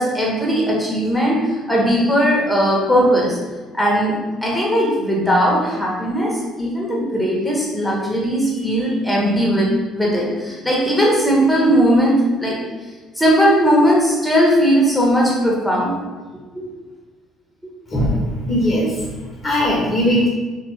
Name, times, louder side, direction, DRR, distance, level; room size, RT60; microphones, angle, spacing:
voice 1, 0.0-3.4 3.7-12.6 13.1-16.0 16.5-16.7, equal, 5° left, -3 dB, 1.0 m, -18 dB
voice 2, 17.9-19.1 19.4-20.3, equal, 30° left, -4 dB, 1.0 m, -19 dB
3.7 x 3.0 x 3.3 m, 1.3 s
figure-of-eight pair, 50°, 0 cm